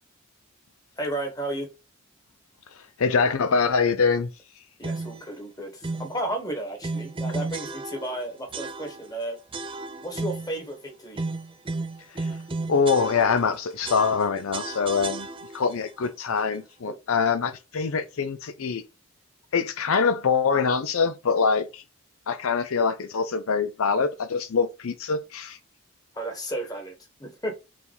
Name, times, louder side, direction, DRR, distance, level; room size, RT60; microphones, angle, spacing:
voice 1, 1.0-1.7 4.8-9.4 10.0-11.2 16.9-17.0 26.1-27.5, right 1 dB, 15° left, 1.5 m, -33 dB
voice 2, 2.8-4.3 12.1-12.3 12.7-15.3 15.5-18.8 19.5-21.8 22.3-25.6, left 5 dB, 70° left, 0.5 m, -24 dB
sound 1, 4.8-5.3 5.8-6.2 6.8-8.2 8.5-9.1 9.5-10.6 11.1-13.5 13.8-15.7, right 3 dB, 25° right, 0.5 m, -33 dB
5.0 x 4.1 x 5.3 m
head